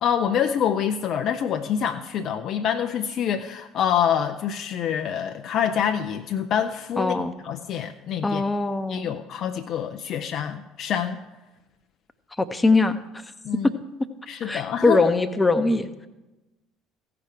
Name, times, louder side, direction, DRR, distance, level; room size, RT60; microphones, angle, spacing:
voice 1, 0.0-8.4 8.9-11.2 13.4-13.7 14.3-15.1, left 8 dB, 50° left, 7 dB, 0.5 m, -26 dB
voice 2, 7.0-7.3 8.2-9.2 12.4-13.0 13.6-13.7 14.4-15.9, left 3 dB, 15° left, 11 dB, 0.8 m, -21 dB
16.0 x 5.9 x 4.9 m, 1.1 s
figure-of-eight pair, 60°, 0 cm